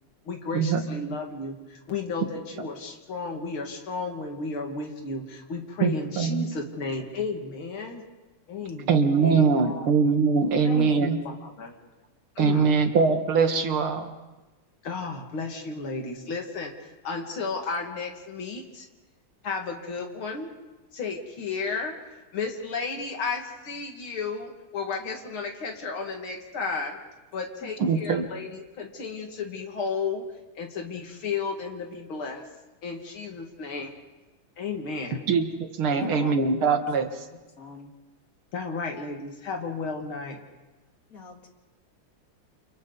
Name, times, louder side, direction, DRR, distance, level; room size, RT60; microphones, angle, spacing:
voice 1, 0.2-8.0 8.5-9.5 10.6-11.7 12.4-12.7 14.8-18.9 19.4-20.5 20.9-27.0 27.3-30.2 30.5-32.4 32.8-33.9 34.6-35.2 38.5-40.4, left 4 dB, 80° left, 2 dB, 3.1 m, -33 dB
voice 2, 5.8-6.5 8.9-11.2 12.4-14.1 27.8-28.2 35.3-37.1, right 5 dB, 85° right, 6 dB, 2.6 m, -22 dB
voice 3, 35.9-36.3 37.3-37.9 41.1-41.5, left 4 dB, 45° left, 4 dB, 2.3 m, -42 dB
29.5 x 28.5 x 4.1 m, 1.1 s
omnidirectional pair, 2.3 m